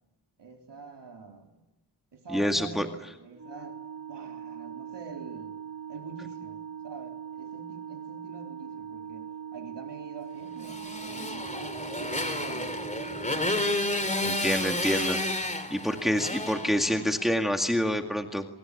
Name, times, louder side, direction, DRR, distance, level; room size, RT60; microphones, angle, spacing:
voice 1, 0.4-1.5 2.1-3.8 4.1-5.6 5.9-6.6 6.8-12.7, right 4 dB, 75° right, 2 dB, 4.0 m, -45 dB
voice 2, 2.3-2.9 14.2-15.2 15.7-18.5, equal, ahead, 4 dB, 2.0 m, -27 dB
Organ, 3.3-14.2, right 8 dB, 35° right, 1.9 m, -41 dB
Motorcycle, 10.6-17.3, left 1 dB, 20° left, 3.7 m, -31 dB
26.5 x 25.0 x 8.4 m, 0.96 s
wide cardioid pair, 95°, 42 cm